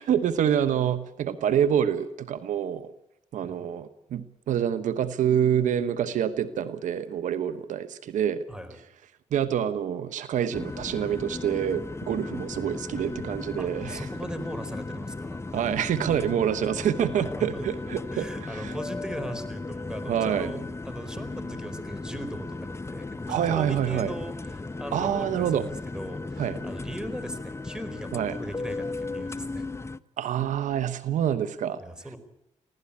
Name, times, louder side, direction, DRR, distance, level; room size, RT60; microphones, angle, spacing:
voice 1, 0.0-2.9 3.3-8.4 9.3-14.1 15.5-18.3 18.5-18.7 20.1-20.5 23.3-24.1 24.9-25.7 26.4-26.6 28.1-28.4 30.2-31.8, right 9 dB, 90° right, 12 dB, 1.1 m, -26 dB
voice 2, 8.5-8.8 13.6-15.4 17.0-17.7 18.1-29.7 31.8-32.2, equal, 5° right, 11 dB, 4.4 m, -39 dB
sound 1, 10.5-30.0, left 3 dB, 20° left, 0.8 m, -36 dB
24.5 x 16.5 x 8.6 m, 0.83 s
cardioid pair, 70°, 13 cm